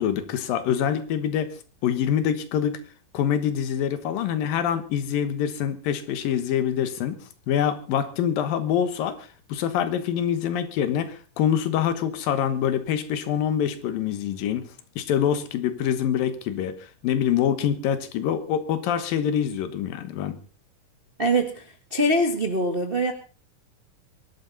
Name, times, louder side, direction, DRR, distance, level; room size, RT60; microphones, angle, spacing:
voice 1, 0.0-1.5 1.8-2.8 3.1-14.7 15.0-20.4, left 9 dB, 80° left, 11 dB, 3.0 m, -25 dB
voice 2, 21.2-23.1, right 1 dB, 60° right, 5 dB, 0.5 m, -23 dB
22.5 x 12.0 x 4.0 m, 0.36 s
omnidirectional pair, 4.0 m